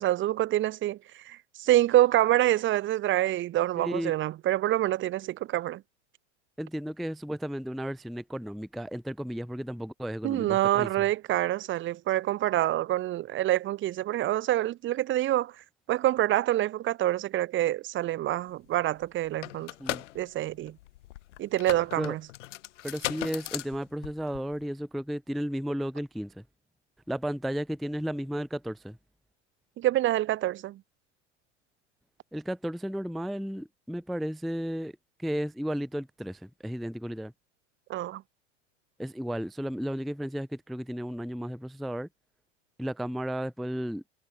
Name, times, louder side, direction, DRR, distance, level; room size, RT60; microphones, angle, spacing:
voice 1, 0.0-5.8 10.2-15.5 15.9-19.7 20.2-20.8 21.4-22.2 29.8-30.8 37.9-38.2, right 14 dB, 30° right, 1.9 m, -26 dB
voice 2, 3.8-4.1 6.6-10.9 19.8-20.0 22.0-22.1 22.8-26.4 27.1-29.0 32.3-34.9 35.2-37.3 39.0-42.1 42.8-44.1, equal, ahead, 0.4 m, -33 dB
sound 1, 18.7-18.8 19.0-24.6, left 16 dB, 70° left, 7.7 m, -38 dB
supercardioid pair, 130°, 37 cm